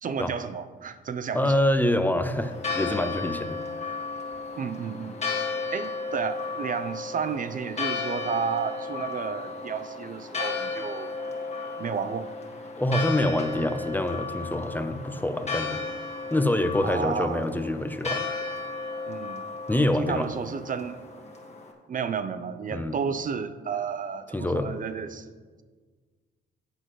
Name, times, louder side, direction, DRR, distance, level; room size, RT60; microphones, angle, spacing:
voice 1, 0.0-1.5 4.6-5.2 5.7-11.1 11.8-12.3 16.8-17.4 19.1-19.4 20.0-21.0 21.9-25.3, right 6 dB, 45° right, 11 dB, 0.5 m, -32 dB
voice 2, 1.3-3.9 12.8-15.8 16.3-18.3 19.7-20.3 22.7-22.9 24.3-24.7, left 1 dB, 10° left, 8 dB, 0.6 m, -26 dB
Church bell, 2.3-21.7, left 4 dB, 35° left, 1.7 m, -34 dB
12.0 x 8.0 x 3.1 m, 1.5 s
cardioid pair, 90°, 20 cm